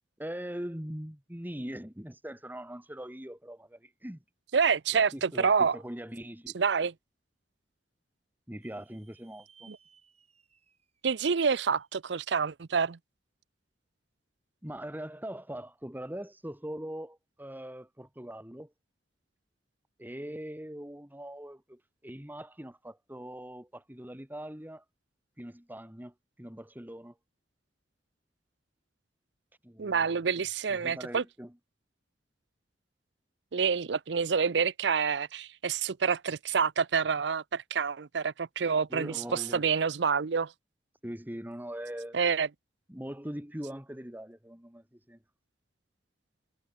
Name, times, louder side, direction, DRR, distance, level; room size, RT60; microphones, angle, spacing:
voice 1, 0.2-4.2 4.9-6.6 8.5-9.7 14.6-18.7 20.0-24.8 25.4-27.2 29.6-30.2 30.7-31.5 38.9-39.6 41.0-42.2 42.9-45.2, equal, 10° right, 2.0 m, -41 dB
voice 2, 4.5-5.8 6.5-6.9 9.7-9.8 11.0-13.0 29.8-31.2 33.5-40.5 42.1-42.5, right 6 dB, 70° right, 0.6 m, -27 dB
sound 1, 8.6-12.1, right 7 dB, 40° right, 6.6 m, -62 dB
head